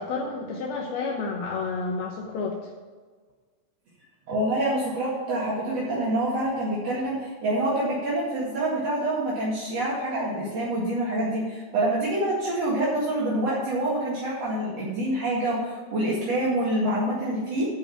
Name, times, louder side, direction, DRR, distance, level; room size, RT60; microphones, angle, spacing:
voice 1, 0.0-2.7, left 4 dB, 80° left, -1 dB, 2.2 m, -30 dB
voice 2, 4.3-17.7, right 1 dB, 50° right, -7 dB, 2.0 m, -26 dB
11.5 x 5.3 x 7.2 m, 1.5 s
omnidirectional pair, 5.9 m